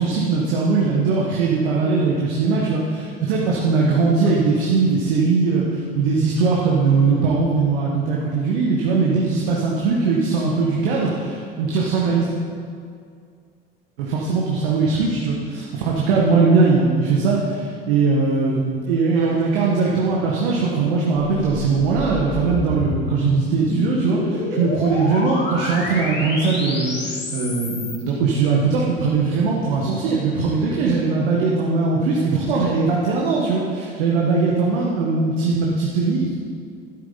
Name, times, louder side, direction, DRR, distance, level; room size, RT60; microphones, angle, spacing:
voice 1, 0.0-12.3 14.0-36.4, right 4 dB, 65° right, -3 dB, 1.6 m, -20 dB
sound 1, 21.3-28.0, left 1 dB, 35° left, 2.8 m, -29 dB
12.5 x 11.0 x 4.1 m, 2.3 s
figure-of-eight pair, 60°, 30 cm